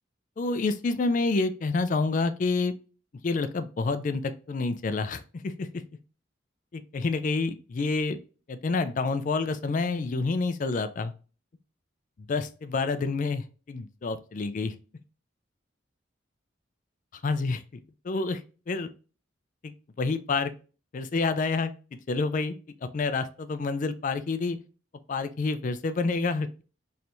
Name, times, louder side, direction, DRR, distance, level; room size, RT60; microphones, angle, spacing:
voice 1, 0.4-2.7 3.2-5.8 6.7-8.2 8.5-11.1 12.3-14.7 17.2-18.4 18.7-18.9 19.6-20.5 20.9-21.7 22.1-24.6 25.1-26.6, left 3 dB, 40° left, 11 dB, 0.4 m, -28 dB
4.4 x 3.2 x 2.6 m, 0.35 s
head